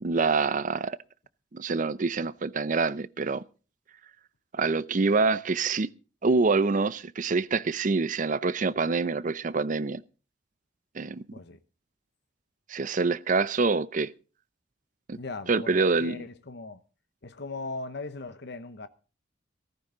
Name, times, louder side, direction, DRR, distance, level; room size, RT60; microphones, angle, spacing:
voice 1, 0.0-1.0 1.5-3.4 4.5-5.9 6.2-10.0 10.9-11.2 12.7-14.1 15.1-15.2 15.5-16.2, right 4 dB, 45° right, 0.6 m, -26 dB
voice 2, 15.1-16.8 17.2-18.9, left 3 dB, 65° left, 0.9 m, -39 dB
15.5 x 14.5 x 3.8 m
head